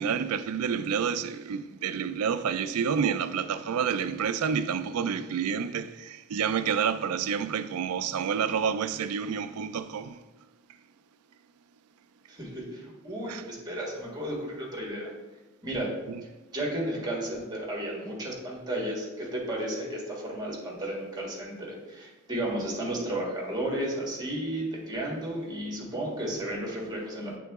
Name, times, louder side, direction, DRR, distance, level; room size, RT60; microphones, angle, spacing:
voice 1, 0.0-10.2 13.3-13.4 16.1-16.2, right 7 dB, 85° right, 0.4 m, -29 dB
voice 2, 12.3-15.1 15.6-15.9 16.5-27.4, right 1 dB, 20° right, 1.6 m, -33 dB
8.2 x 3.8 x 3.5 m
head